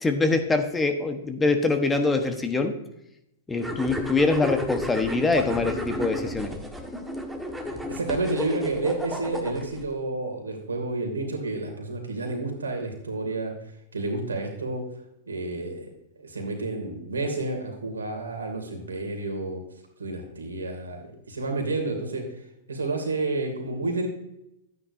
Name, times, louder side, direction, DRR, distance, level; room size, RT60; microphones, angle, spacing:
voice 1, 0.0-2.7 3.5-6.5, left 3 dB, 15° left, 6 dB, 1.2 m, -24 dB
sound 1, 3.6-9.8, equal, 5° right, 1.6 m, -33 dB
voice 2, 7.7-13.5 13.9-14.8 15.3-15.8 16.2-19.6 20.0-22.3 22.7-24.1, right 2 dB, 85° right, 3 dB, 2.7 m, -30 dB
12.5 x 9.6 x 2.7 m, 0.84 s
hypercardioid pair, 105°, 0 cm